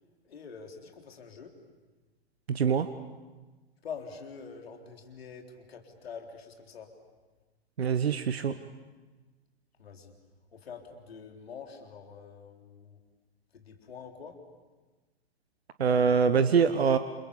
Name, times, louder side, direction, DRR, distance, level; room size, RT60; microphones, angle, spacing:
voice 1, 0.3-1.6 3.8-6.9 9.8-10.1 10.5-13.0 13.5-14.4, left 6 dB, 70° left, 3 dB, 4.1 m, -45 dB
voice 2, 2.5-2.9 7.8-8.5 15.8-17.0, right 6 dB, 70° right, 12 dB, 1.2 m, -24 dB
29.5 x 27.5 x 7.0 m, 1.3 s
figure-of-eight pair, 105°, 32 cm